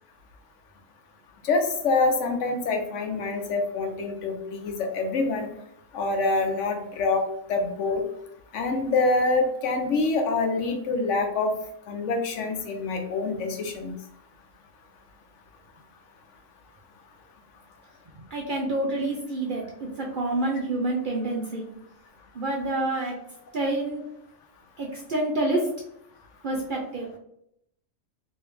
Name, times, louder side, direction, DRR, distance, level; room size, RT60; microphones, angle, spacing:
voice 1, 1.4-5.5 5.9-7.2 7.5-8.0 8.5-11.5 11.9-13.9, left 3 dB, 70° left, 4 dB, 1.0 m, -26 dB
voice 2, 18.3-21.7 22.3-23.1 23.5-24.0 24.8-25.7 26.4-27.2, right 2 dB, 55° right, -1 dB, 0.5 m, -28 dB
3.0 x 2.6 x 3.3 m, 0.76 s
omnidirectional pair, 1.3 m